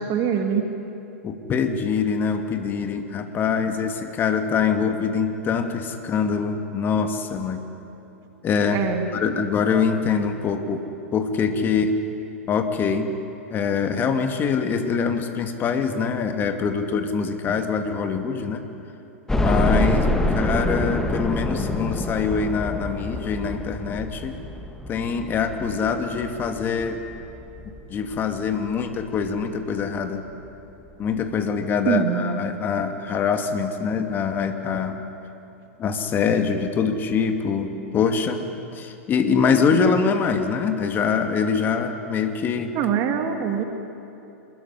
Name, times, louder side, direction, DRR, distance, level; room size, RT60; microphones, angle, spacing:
voice 1, 0.1-0.6 8.7-9.1 31.9-32.4 42.7-43.6, right 8 dB, 40° right, 5 dB, 3.0 m, -23 dB
voice 2, 1.2-7.6 8.4-8.8 9.1-10.9 11.1-12.0 12.5-13.1 13.5-18.6 19.4-24.3 24.9-27.0 27.9-30.2 31.0-35.0 35.8-42.8, left 6 dB, 25° left, 6 dB, 2.5 m, -24 dB
sound 1, 19.3-28.2 28.7-28.8 29.1-29.2 30.4-30.5 30.8-30.9, left 1 dB, 5° left, 2.5 m, -26 dB
26.5 x 21.5 x 9.9 m, 2.8 s
figure-of-eight pair, 100°, 7 cm